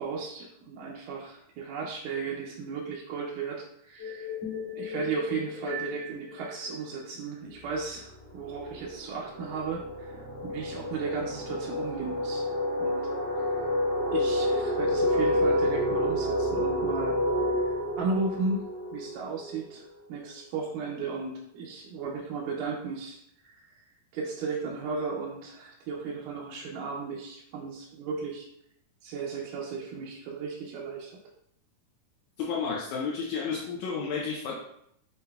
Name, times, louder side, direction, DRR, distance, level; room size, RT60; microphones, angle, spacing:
voice 1, 0.0-4.3 4.8-12.5 12.8-13.0 13.3-13.6 14.1-17.7 18.0-18.6 18.9-23.2 23.4-23.6 24.1-28.5 29.0-31.2, right 4 dB, 80° right, -3 dB, 2.2 m, -35 dB
sound 1, 4.0-7.3, left 5 dB, 55° left, 2.1 m, -38 dB
sound 2, 7.6-7.8 8.1-19.7, left 1 dB, 40° right, 0.6 m, -29 dB
voice 2, 32.4-34.6, left 5 dB, 80° left, -2 dB, 1.7 m, -31 dB
7.6 x 2.7 x 2.2 m, 0.74 s
omnidirectional pair, 3.8 m